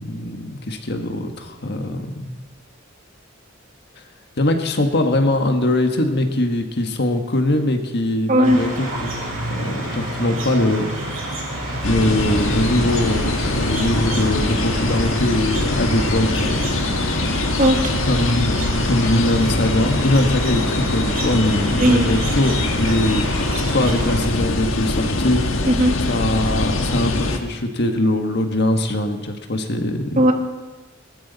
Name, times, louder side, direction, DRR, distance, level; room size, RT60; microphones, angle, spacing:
voice 1, 0.0-2.5 4.4-11.5 11.8-16.6 18.0-25.6 26.1-30.2, left 1 dB, 55° left, 5 dB, 1.5 m, -22 dB
voice 2, 8.3-8.6 17.6-18.0 21.7-22.1 25.7-26.0 30.2-30.3, right 1 dB, 40° right, 4 dB, 1.7 m, -16 dB
sound 1, 8.4-24.2, right 1 dB, 80° right, 7.0 m, -30 dB
sound 2, 11.8-27.4, left 2 dB, 80° left, 1.5 m, -22 dB
20.5 x 13.5 x 4.1 m, 1.2 s
head